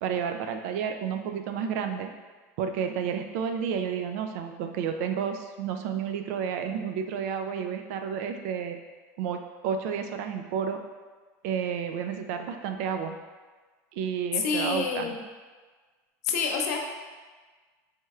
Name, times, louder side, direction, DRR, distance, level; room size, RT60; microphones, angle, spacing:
voice 1, 0.0-2.1 2.6-8.8 9.2-10.8 11.4-13.1 13.9-15.2, right 7 dB, 70° right, 6 dB, 0.4 m, -31 dB
voice 2, 14.3-15.2 16.2-16.8, left 5 dB, 85° left, 2 dB, 0.6 m, -27 dB
4.3 x 3.1 x 2.3 m, 1.4 s
supercardioid pair, 145°, 8 cm